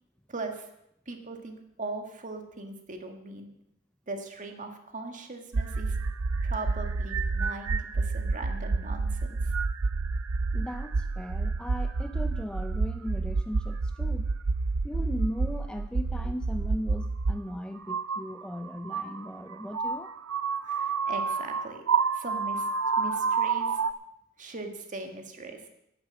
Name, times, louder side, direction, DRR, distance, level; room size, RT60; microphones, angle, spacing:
voice 1, 0.3-0.7 1.1-3.5 4.1-5.9 6.4-9.4 20.6-21.8 22.1-22.7 23.0-23.8 24.4-25.6, right 3 dB, 35° right, 4 dB, 1.9 m, -39 dB
sound 1, 5.5-17.4 17.8-23.9, right 4 dB, 70° right, 0.6 m, -29 dB
voice 2, 10.5-14.3 14.8-20.1, equal, 5° left, 8 dB, 0.4 m, -37 dB
11.5 x 9.6 x 7.6 m, 0.80 s
head